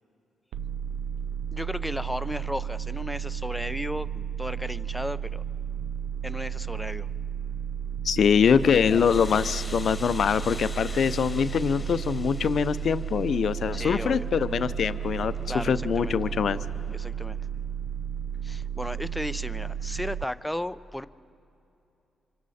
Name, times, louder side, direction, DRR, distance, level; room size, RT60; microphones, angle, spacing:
sound 1, 0.5-20.3, right 8 dB, 80° right, 0.4 m, -33 dB
voice 1, 1.5-5.4 6.2-7.1 13.7-14.3 15.5-16.2 16.9-17.4 18.4-21.1, left 1 dB, 5° left, 13 dB, 0.5 m, -34 dB
voice 2, 8.0-15.3 15.6-16.6, left 7 dB, 65° left, 14 dB, 0.6 m, -24 dB
sound 2, 8.4-16.9, left 2 dB, 30° left, 1.6 m, -43 dB
26.0 x 24.5 x 4.2 m, 2.8 s
supercardioid pair, 55°, 0 cm